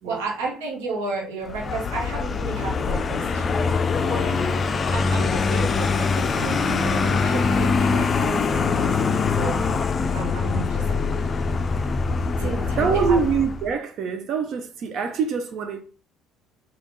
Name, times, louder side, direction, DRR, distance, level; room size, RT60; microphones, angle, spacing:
voice 1, 0.0-9.6 10.1-11.5 12.4-13.2, right 4 dB, 80° right, 0.8 m, -33 dB
Vehicle, 1.5-13.7, left 4 dB, 35° left, 0.3 m, -23 dB
voice 2, 12.3-15.8, right 6 dB, 60° right, 0.4 m, -25 dB
3.5 x 2.3 x 3.7 m
hypercardioid pair, 65°, 0 cm